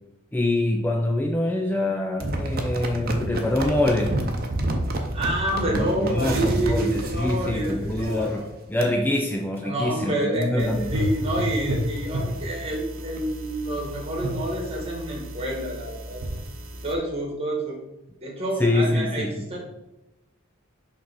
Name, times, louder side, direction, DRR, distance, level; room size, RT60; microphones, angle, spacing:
voice 1, 0.3-4.2 5.7-10.9 18.6-19.5, left 1 dB, 10° left, 1 dB, 0.3 m, -25 dB
sound 1, 2.2-8.4 8.8-8.9 9.4-9.6 10.0-10.1 10.4-10.5 11.0-11.2 11.6-11.7 12.0-12.1 12.4-13.2 13.8-13.9, right 1 dB, 45° right, 0.8 m, -29 dB
voice 2, 5.1-8.5 9.6-16.2 16.8-17.8 18.2-19.6, right 1 dB, 30° right, -1 dB, 1.5 m, -28 dB
sound 2, 10.6-16.9, equal, 75° right, 0.8 m, -32 dB
5.2 x 3.5 x 5.7 m, 0.93 s
head